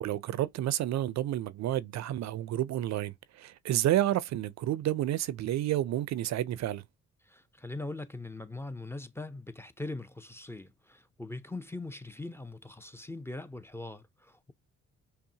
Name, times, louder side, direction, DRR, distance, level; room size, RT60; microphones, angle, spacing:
voice 1, 0.0-6.8, right 13 dB, 65° right, 0.5 m, -30 dB
voice 2, 7.2-14.5, left 2 dB, 10° left, 0.5 m, -41 dB
5.6 x 2.1 x 2.7 m
cardioid pair, 90°, 30 cm